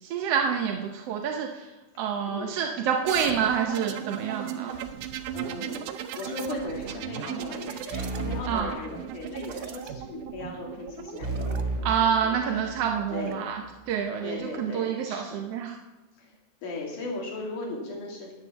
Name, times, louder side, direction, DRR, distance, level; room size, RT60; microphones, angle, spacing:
voice 1, 0.0-1.7 2.0-4.8 8.5-8.7 11.8-15.8, right 7 dB, 70° right, 3 dB, 1.6 m, -27 dB
sound 1, 3.1-11.6 12.7-13.3, right 10 dB, 85° right, 2.3 m, -37 dB
voice 2, 4.4-4.9 5.3-5.8 6.1-12.8 13.1-13.4 14.2-15.4 16.2-16.4 16.6-18.3, left 2 dB, 80° left, -1 dB, 3.9 m, -37 dB
sound 2, 7.9-9.5 11.2-13.0, right 2 dB, 45° right, 3.1 m, -33 dB
11.0 x 9.0 x 7.1 m, 1.1 s
omnidirectional pair, 3.5 m